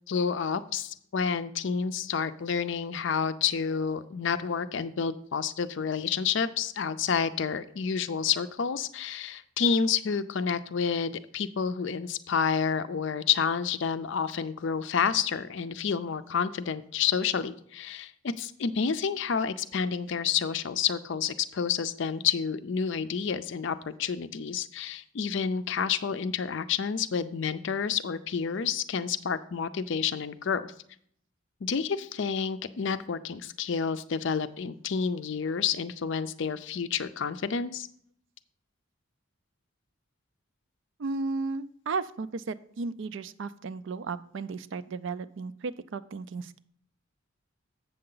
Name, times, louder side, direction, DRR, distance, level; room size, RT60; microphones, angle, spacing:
voice 1, 0.1-30.7 31.6-37.9, left 6 dB, 60° left, 12 dB, 0.4 m, -29 dB
voice 2, 41.0-46.6, right 4 dB, 60° right, 14 dB, 0.4 m, -34 dB
7.9 x 6.6 x 3.8 m, 0.65 s
head